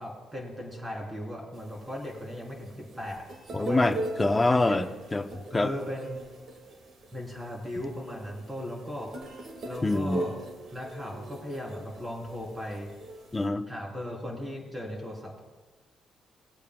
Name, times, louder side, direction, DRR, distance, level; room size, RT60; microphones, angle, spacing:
voice 1, 0.0-3.3 3.6-3.8 4.2-4.3 4.6-4.8 5.5-6.2 7.1-9.3 9.6-10.4 10.7-12.9 13.7-15.4, left 1 dB, 15° right, -2 dB, 3.5 m, -37 dB
sound 1, 1.5-13.5, right 2 dB, 55° right, 1.8 m, -40 dB
voice 2, 3.5-4.9 5.1-5.3 5.5-5.7 9.8-10.3 13.3-13.6, left 2 dB, 20° left, 8 dB, 0.7 m, -25 dB
20.0 x 8.2 x 2.3 m, 1.3 s
cardioid pair, 90°, 0 cm